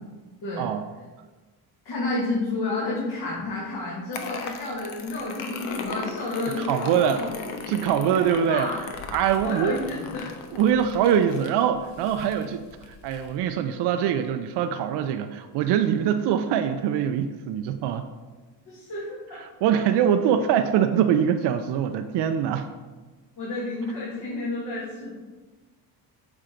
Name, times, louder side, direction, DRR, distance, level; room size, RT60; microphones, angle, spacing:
voice 1, 1.9-7.3 8.1-8.8 9.4-10.3 18.7-19.4 23.4-25.1, left 2 dB, 60° left, -6 dB, 1.9 m, -30 dB
sound 1, 4.1-13.4, left 5 dB, 85° left, 0.8 m, -38 dB
voice 2, 6.6-7.2 7.7-8.7 9.1-9.8 10.5-18.1 19.6-22.7, right 9 dB, 65° right, 8 dB, 0.5 m, -23 dB
7.7 x 3.7 x 4.5 m, 1.3 s
supercardioid pair, 80°, 44 cm